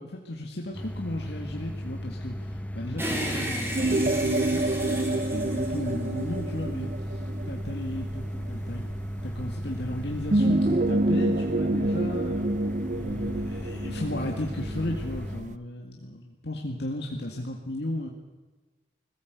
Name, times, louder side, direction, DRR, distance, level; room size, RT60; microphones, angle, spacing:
voice 1, 0.0-8.9 9.2-12.5 12.9-18.1, left 1 dB, 70° left, 1 dB, 2.0 m, -35 dB
sound 1, 0.7-15.4, equal, 10° left, 0.7 m, -36 dB
sound 2, 3.0-6.5, equal, 15° right, 3.3 m, -34 dB
sound 3, 3.8-15.6, right 2 dB, 40° right, 0.6 m, -28 dB
21.5 x 15.5 x 8.2 m, 1.2 s
head